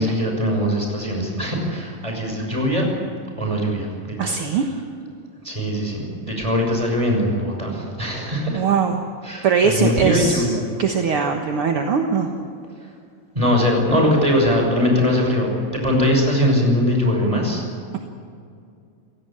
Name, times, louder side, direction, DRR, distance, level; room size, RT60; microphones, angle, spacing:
voice 1, 0.0-2.9 3.4-4.4 5.4-8.6 9.2-10.6 13.3-17.6, left 1 dB, 10° right, 1 dB, 5.9 m, -21 dB
voice 2, 4.2-4.7 8.5-9.0 9.4-12.3, right 6 dB, 55° right, 3 dB, 1.7 m, -21 dB
29.0 x 17.0 x 8.7 m, 2.4 s
omnidirectional pair, 4.0 m